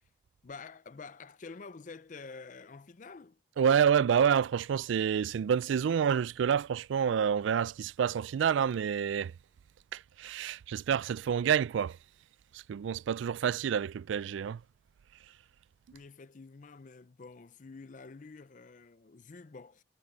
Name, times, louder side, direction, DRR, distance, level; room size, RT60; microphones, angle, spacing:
voice 1, 0.4-3.4 15.9-19.8, left 4 dB, 40° left, 0.5 m, -48 dB
voice 2, 3.6-9.3 9.9-12.0 12.5-14.6, right 8 dB, 80° right, 0.3 m, -28 dB
head